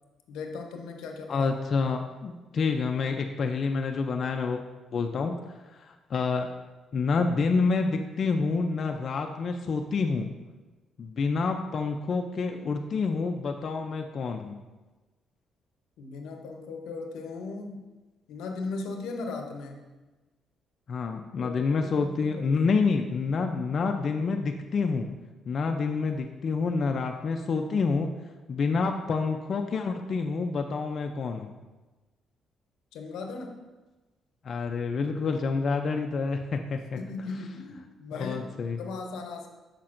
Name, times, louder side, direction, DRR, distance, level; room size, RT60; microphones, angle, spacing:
voice 1, 0.3-1.5 16.0-17.9 18.3-19.9 21.4-22.8 32.9-33.6 37.0-38.5 38.8-39.5, left 3 dB, 90° left, 4 dB, 0.6 m, -38 dB
voice 2, 1.3-4.6 4.9-5.4 5.8-6.5 6.9-10.3 11.0-14.6 20.9-25.1 25.5-28.1 28.5-31.5 34.4-37.0 38.1-38.8, left 4 dB, 50° left, 4 dB, 0.4 m, -28 dB
6.5 x 5.8 x 2.5 m, 1.2 s
cardioid pair, 90°, 0 cm